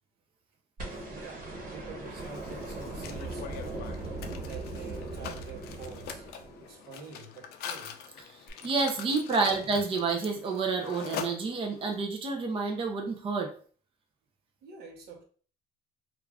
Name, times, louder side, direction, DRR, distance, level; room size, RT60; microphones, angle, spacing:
sound 1, 0.8-7.0 8.5-8.6, right 2 dB, 55° right, 1.2 m, -39 dB
voice 1, 0.9-3.9 4.3-8.0 9.4-9.7 14.6-15.2, right 3 dB, 75° right, 0.9 m, -47 dB
Mechanisms, 2.1-11.9, left 7 dB, 70° left, 0.4 m, -43 dB
voice 2, 8.3-13.5, right 4 dB, 30° right, 0.5 m, -29 dB
2.4 x 2.4 x 3.2 m
cardioid pair, 110°, 17 cm